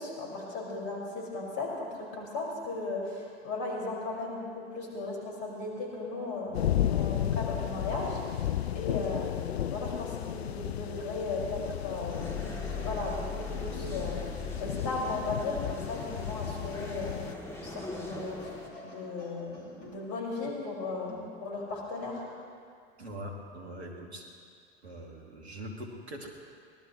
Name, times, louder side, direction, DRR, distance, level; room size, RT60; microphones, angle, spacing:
voice 1, 0.0-18.5 18.8-22.3, left 3 dB, 45° left, -3 dB, 5.7 m, -36 dB
sound 1, 6.5-17.3, left 11 dB, 70° left, 0.6 m, -34 dB
sound 2, 12.1-14.3 15.0-17.4 17.8-20.0 21.1-21.3, left 1 dB, 30° left, 5.0 m, -50 dB
sound 3, 12.1-18.7, left 3 dB, 10° left, 3.1 m, -40 dB
voice 2, 23.0-24.3 24.8-26.3, equal, 75° right, 1 dB, 2.5 m, -42 dB
24.0 x 19.0 x 3.2 m, 2.2 s
figure-of-eight pair, 80°, 33 cm